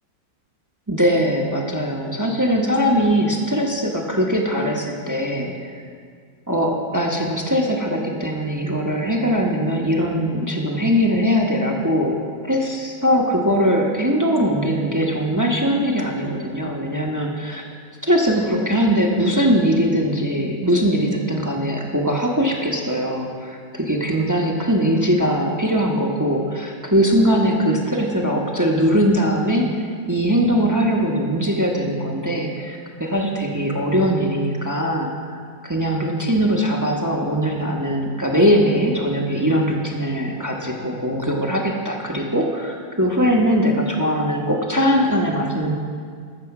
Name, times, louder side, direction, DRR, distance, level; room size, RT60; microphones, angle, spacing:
voice 1, 0.9-5.8 6.5-12.2 12.4-17.6 18.0-35.3 35.6-45.8, equal, 20° right, -1 dB, 0.5 m, -21 dB
14.0 x 7.0 x 5.9 m, 2.1 s
omnidirectional pair, 2.1 m